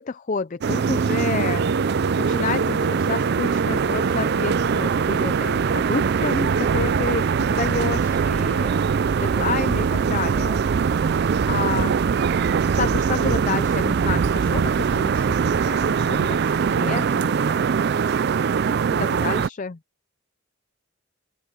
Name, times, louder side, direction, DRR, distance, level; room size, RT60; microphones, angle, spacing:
voice 1, 0.0-1.7 2.2-8.8 9.2-10.6 11.2-12.0 12.8-17.6 18.9-19.8, left 5 dB, 35° left, 0.4 m, -30 dB
sound 1, 0.6-19.5, right 6 dB, 50° right, 0.3 m, -22 dB
Wind instrument woodwind instrument, 1.4-7.2, right 1 dB, 70° right, 3.5 m, -32 dB
open air
head